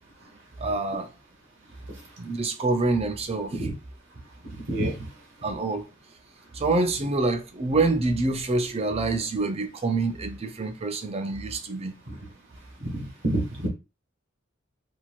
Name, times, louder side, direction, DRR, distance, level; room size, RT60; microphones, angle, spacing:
voice 1, 0.6-1.1 2.2-3.5 5.4-5.8 6.5-11.9, right 3 dB, 30° right, 0.5 m, -26 dB
voice 2, 4.7-5.0 12.1-12.2 12.8-13.7, right 1 dB, 60° right, 1.1 m, -28 dB
3.0 x 2.6 x 2.4 m
head